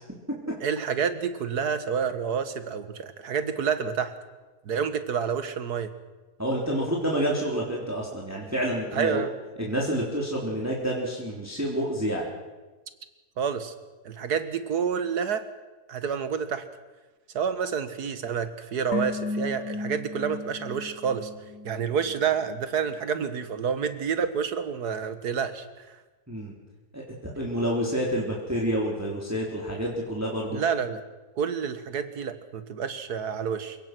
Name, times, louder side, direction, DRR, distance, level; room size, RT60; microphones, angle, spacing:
voice 1, 0.6-4.1 4.7-5.9 8.9-9.3 13.4-13.7 14.1-15.5 15.9-16.7 17.3-21.3 21.6-26.0 30.5-31.0 31.4-33.8, right 7 dB, 70° right, 11 dB, 1.9 m, -28 dB
voice 2, 6.4-9.2 9.6-12.2 26.3-26.5 26.9-27.0 27.4-30.6, equal, 10° right, -3 dB, 3.5 m, -28 dB
sound 1, 18.9-22.2 22.5-22.6, left 2 dB, 55° left, 1.5 m, -34 dB
28.5 x 17.0 x 6.1 m, 1.2 s
omnidirectional pair, 1.7 m